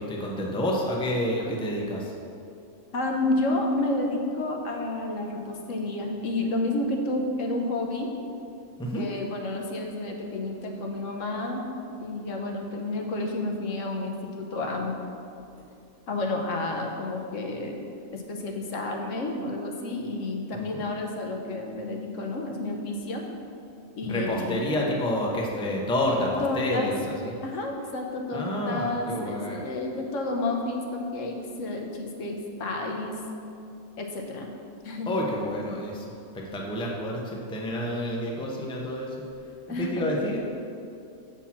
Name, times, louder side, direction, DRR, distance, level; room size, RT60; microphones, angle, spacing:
voice 1, 0.0-2.1 8.8-9.1 20.5-20.9 24.0-27.3 28.3-29.6 35.1-36.1 36.3-39.1 39.8-40.4, left 1 dB, 5° left, -2 dB, 0.5 m, -29 dB
voice 2, 2.9-8.1 8.9-11.7 12.0-14.9 16.1-23.3 23.9-24.7 26.1-26.9 27.4-33.2 34.0-34.6 34.8-35.1 39.7-40.0, left 2 dB, 70° left, 2 dB, 1.2 m, -30 dB
7.1 x 4.5 x 5.8 m, 2.6 s
omnidirectional pair, 1.4 m